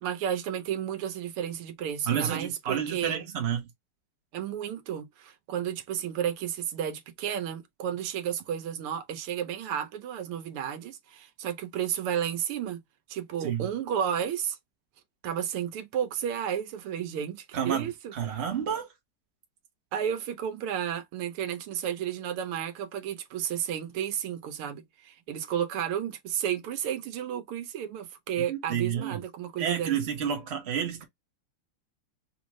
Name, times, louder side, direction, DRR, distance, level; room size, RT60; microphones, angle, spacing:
voice 1, 0.0-3.3 4.3-12.8 13.1-14.6 15.2-18.4 19.9-30.0, right 9 dB, 85° right, 1.7 m, -32 dB
voice 2, 2.0-3.6 13.4-13.7 17.5-18.9 28.5-29.2 29.6-31.0, right 8 dB, 40° right, 1.1 m, -30 dB
5.7 x 2.6 x 3.1 m
omnidirectional pair, 2.4 m